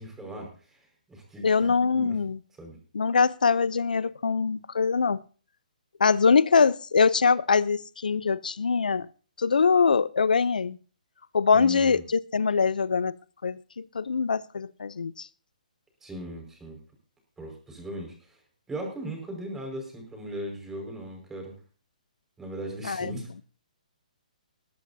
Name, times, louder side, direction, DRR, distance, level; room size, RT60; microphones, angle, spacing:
voice 1, 0.0-2.2 2.6-2.8 11.5-12.0 16.0-16.8 17.4-18.4 18.7-21.5 22.4-23.3, right 1 dB, 10° right, 5.1 m, -38 dB
voice 2, 1.4-2.4 2.9-5.2 6.0-9.1 9.4-10.8 11.3-13.1 13.4-15.3 22.8-23.1, left 5 dB, 85° left, 0.5 m, -23 dB
20.5 x 12.5 x 2.7 m
hypercardioid pair, 150°, 4 cm